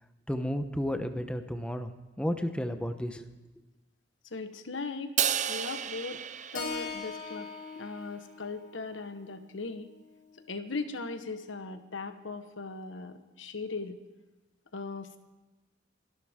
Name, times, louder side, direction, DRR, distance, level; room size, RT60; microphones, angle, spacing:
voice 1, 0.3-1.9 2.2-3.3, equal, 5° left, 7 dB, 1.0 m, -32 dB
voice 2, 4.3-5.1 5.5-6.2 6.5-9.9 10.5-14.0 14.7-15.2, left 3 dB, 85° left, 8 dB, 1.3 m, -38 dB
Crash cymbal, 5.2-7.6, right 9 dB, 40° right, 0.6 m, -32 dB
Keyboard (musical), 6.5-10.8, left 4 dB, 50° left, 2.0 m, -42 dB
28.0 x 12.5 x 3.7 m, 1.2 s
head